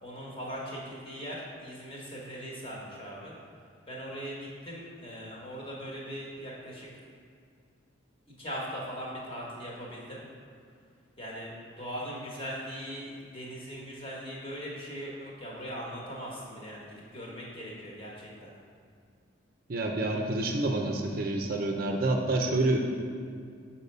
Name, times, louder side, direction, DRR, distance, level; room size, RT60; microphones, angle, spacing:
voice 1, 0.0-3.3 3.9-6.9 8.4-10.2 11.2-18.5, equal, 25° left, -4 dB, 1.3 m, -40 dB
voice 2, 19.7-22.8, right 2 dB, 45° right, 2 dB, 0.5 m, -28 dB
7.0 x 4.3 x 5.4 m, 2.2 s
head